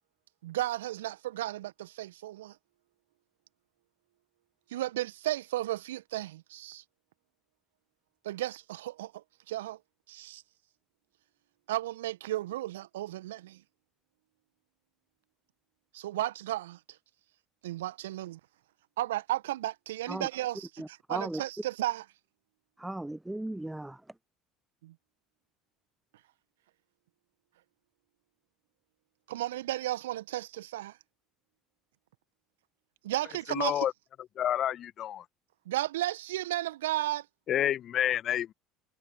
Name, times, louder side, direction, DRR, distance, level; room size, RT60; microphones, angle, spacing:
voice 1, 0.4-2.6 4.7-6.8 8.2-9.8 10.1-10.4 11.7-13.6 15.9-16.8 17.6-18.4 19.0-22.0 24.8-24.9 29.3-31.0 33.0-33.8 35.6-37.3, right 15 dB, 75° right, 1.4 m, -34 dB
voice 2, 20.8-21.4 22.8-24.0, right 1 dB, 10° right, 0.6 m, -37 dB
voice 3, 33.5-33.9 34.4-35.2 37.5-38.5, left 11 dB, 45° left, 1.5 m, -29 dB
figure-of-eight pair, 60°, 0 cm